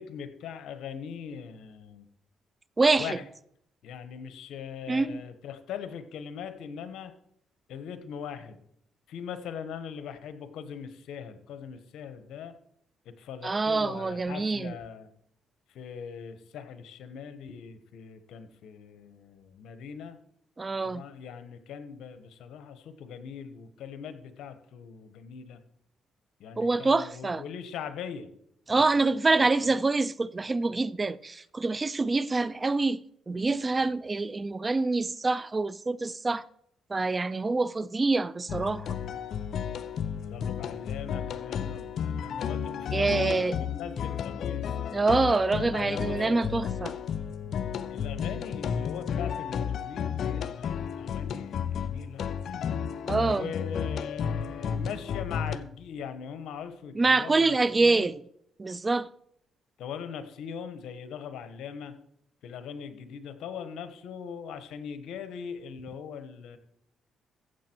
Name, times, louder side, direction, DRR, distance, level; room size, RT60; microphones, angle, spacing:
voice 1, 0.0-2.0 3.0-3.2 3.8-7.1 7.7-8.6 9.1-12.5 13.2-15.1 15.7-20.2 20.8-25.6 26.4-28.3 40.2-44.7 45.5-46.6 47.2-47.6 47.9-52.7 53.3-58.1 59.8-62.0 62.4-66.6, left 7 dB, 80° left, 1.2 m, -41 dB
voice 2, 2.8-3.2 4.9-5.2 13.4-14.7 20.6-21.0 26.6-27.4 28.7-36.5 36.9-38.9 42.9-43.6 44.9-47.0 53.1-53.5 57.0-58.2 58.6-59.1, right 3 dB, 25° right, 0.4 m, -26 dB
sound 1, 38.5-55.6, left 7 dB, 65° left, 0.6 m, -33 dB
14.5 x 7.7 x 4.5 m
cardioid pair, 90°, 0 cm